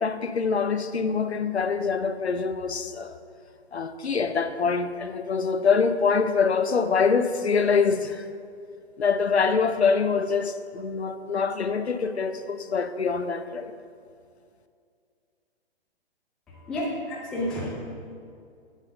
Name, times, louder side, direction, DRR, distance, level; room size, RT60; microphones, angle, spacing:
voice 1, 0.0-3.2 3.7-8.3 9.0-13.7, left 5 dB, 80° left, 0.7 m, -25 dB
voice 2, 16.5-17.7, left 1 dB, ahead, 0.4 m, -31 dB
7.5 x 7.3 x 6.1 m
figure-of-eight pair, 125°, 32 cm